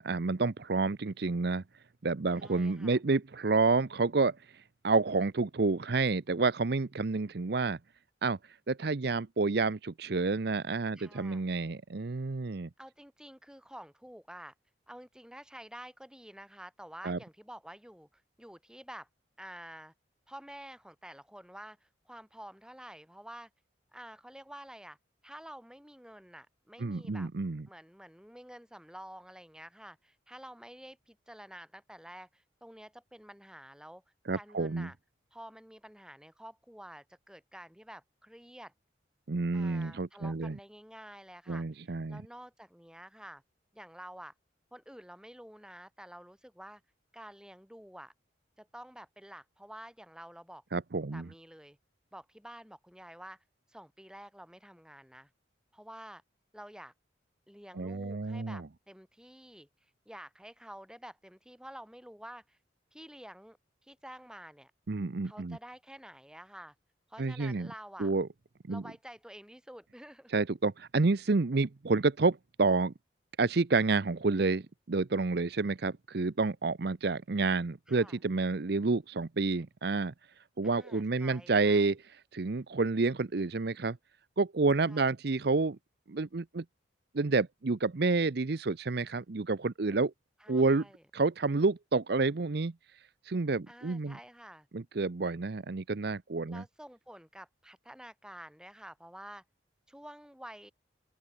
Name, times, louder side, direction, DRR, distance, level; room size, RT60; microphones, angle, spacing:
voice 1, 0.0-1.6 2.0-7.8 8.2-8.4 8.7-12.7 17.0-17.2 26.8-27.6 34.3-34.9 39.3-40.6 41.5-42.2 50.7-51.3 57.7-58.7 64.9-65.6 67.2-67.7 68.0-68.3 68.7-68.8 70.3-72.9 73.4-80.1 80.6-82.0 82.3-84.0 84.4-85.8 86.1-86.6 87.1-90.1 90.5-90.9 91.1-92.7 93.2-94.2 94.7-96.6, right 3 dB, 55° right, 0.6 m, -29 dB
voice 2, 2.3-3.0 11.0-11.4 12.8-14.5 14.9-19.1 19.4-19.9 20.3-23.5 23.9-25.0 25.2-27.3 27.7-34.0 34.3-35.0 35.3-38.7 39.5-43.4 43.7-44.3 44.7-46.8 47.1-48.1 48.6-50.6 51.1-51.8 52.1-53.4 53.7-55.3 55.7-56.2 56.5-56.9 57.5-59.7 60.1-62.6 62.9-63.6 63.8-64.7 65.2-66.7 67.1-68.1 68.7-70.3 77.9-78.2 80.6-81.9 84.9-85.1 90.4-91.0 93.7-94.7 96.5-99.4 99.9-100.7, right 1 dB, 5° right, 5.6 m, -49 dB
open air
head